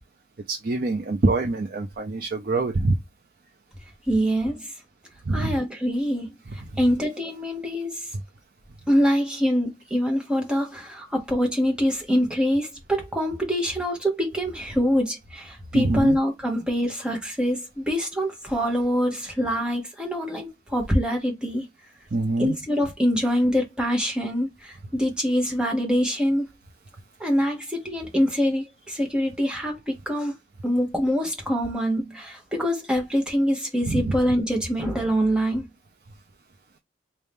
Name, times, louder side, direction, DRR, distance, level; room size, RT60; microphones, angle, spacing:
voice 1, 0.5-3.0 5.3-5.6 15.7-16.2 22.1-22.6 33.9-34.2, right 2 dB, 50° right, 0.5 m, -24 dB
voice 2, 4.1-4.7 5.3-6.3 6.8-8.1 8.9-21.7 22.4-26.5 27.2-30.4 30.6-35.7, equal, 5° right, 1.0 m, -24 dB
4.0 x 2.7 x 3.5 m
head